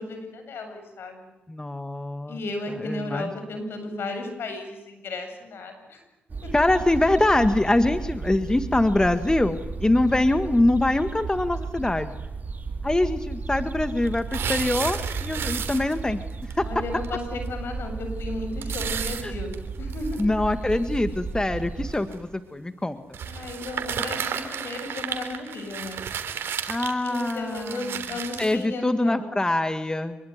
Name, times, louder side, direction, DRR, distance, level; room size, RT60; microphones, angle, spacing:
voice 1, 0.0-1.3 2.3-6.0 6.4-6.5 16.6-20.3 23.3-26.0 27.0-29.3, left 2 dB, 70° left, 6 dB, 8.0 m, -34 dB
voice 2, 1.5-2.4 2.8-3.3 6.5-12.2 12.8-16.7 19.2-19.3 20.2-23.0 26.7-27.8 28.4-30.2, left 2 dB, 20° left, 10 dB, 1.8 m, -24 dB
sound 1, 6.3-21.9, right 4 dB, 45° right, 3.9 m, -34 dB
sound 2, 14.0-16.2 16.5-16.6 17.0-17.1 17.5-17.6 18.6-20.2 20.9-21.0 21.9-22.2 23.1-28.6, right 8 dB, 80° right, 3.6 m, -32 dB
26.0 x 23.5 x 9.7 m, 0.96 s
supercardioid pair, 55°, 4 cm